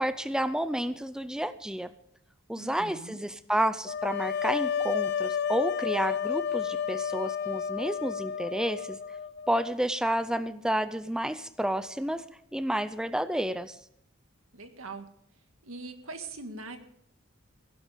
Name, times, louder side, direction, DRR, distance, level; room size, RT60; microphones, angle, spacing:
voice 1, 0.0-1.9 2.5-9.0 9.5-12.2 12.5-13.8, right 1 dB, 5° right, 13 dB, 0.4 m, -30 dB
voice 2, 2.5-3.2 14.5-15.1 15.6-16.8, right 3 dB, 85° right, 7 dB, 1.8 m, -41 dB
sound 1, 3.9-9.7, left 7 dB, 55° left, 0.5 m, -31 dB
16.5 x 11.5 x 5.1 m, 0.71 s
head